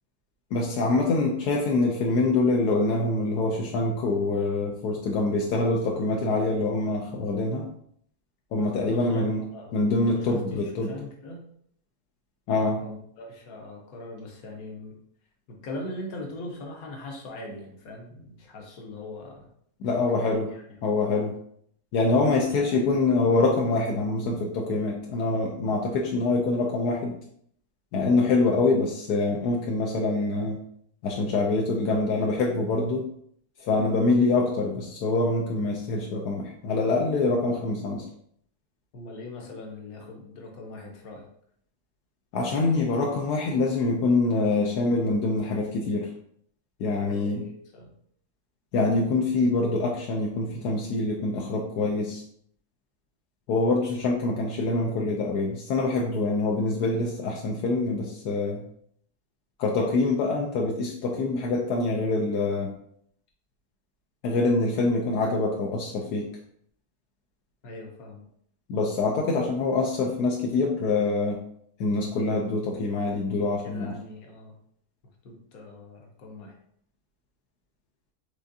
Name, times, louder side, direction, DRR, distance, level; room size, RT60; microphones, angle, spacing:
voice 1, 0.5-7.7 8.5-9.4 9.7-10.9 12.5-12.8 19.8-20.5 20.8-21.3 21.9-27.2 27.9-30.6 31.0-33.0 33.6-38.0 42.3-46.1 46.8-47.4 48.7-52.2 53.5-58.6 59.6-62.7 64.2-66.3 68.7-71.4 71.8-73.9, left 3 dB, 80° left, -1 dB, 1.2 m, -25 dB
voice 2, 8.8-9.8 10.1-11.4 12.8-15.0 15.5-19.5 19.9-20.8 22.7-22.9 38.9-41.3 47.0-47.9 67.6-68.3 73.4-74.5 75.2-76.6, left 2 dB, 65° left, 1 dB, 1.4 m, -41 dB
5.0 x 3.5 x 2.6 m, 0.67 s
omnidirectional pair, 1.7 m